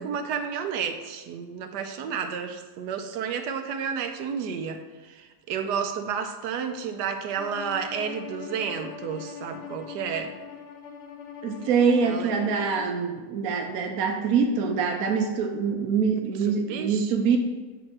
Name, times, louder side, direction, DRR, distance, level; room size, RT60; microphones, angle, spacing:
voice 1, 0.0-10.3 12.0-12.3 16.5-17.1, right 7 dB, 80° right, 7 dB, 1.2 m, -31 dB
Bowed string instrument, 7.4-13.0, left 8 dB, 55° left, 0.7 m, -42 dB
voice 2, 11.4-17.4, right 5 dB, 65° right, 3 dB, 1.0 m, -24 dB
8.7 x 2.9 x 6.0 m, 1.3 s
omnidirectional pair, 1.8 m